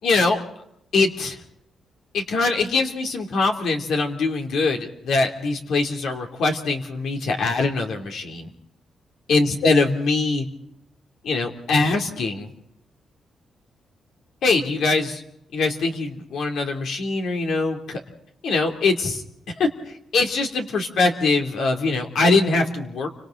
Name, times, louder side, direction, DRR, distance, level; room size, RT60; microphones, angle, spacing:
voice 1, 0.0-0.4 0.9-1.4 2.1-8.5 9.3-10.5 11.2-12.5 14.4-15.2 15.5-18.0 18.4-19.2 19.6-23.1, left 3 dB, 75° left, 3 dB, 3.0 m, -22 dB
30.0 x 25.5 x 3.9 m, 0.76 s
cardioid pair, 135°, 0 cm